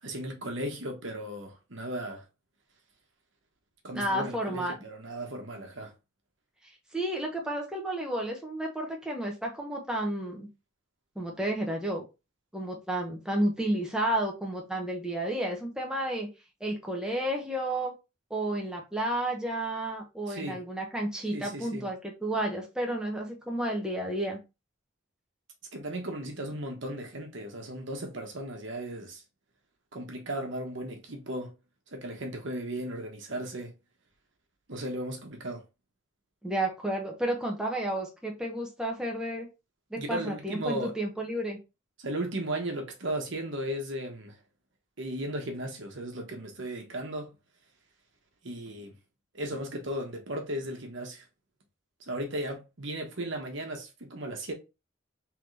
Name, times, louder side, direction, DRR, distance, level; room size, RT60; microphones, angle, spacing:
voice 1, 0.0-2.2 3.8-5.9 20.3-20.6 21.3-21.9 25.7-29.2 29.9-31.5 31.9-33.7 34.7-35.6 40.0-40.9 42.0-44.4 45.0-47.3 48.4-48.9 49.3-51.2 52.1-54.5, right 1 dB, 65° right, 1.2 m, -36 dB
voice 2, 3.9-4.8 6.9-10.5 11.2-12.0 12.5-16.3 16.6-17.9 18.3-24.4 36.4-39.5 39.9-41.6, right 1 dB, 5° right, 0.8 m, -31 dB
3.7 x 3.4 x 3.2 m
head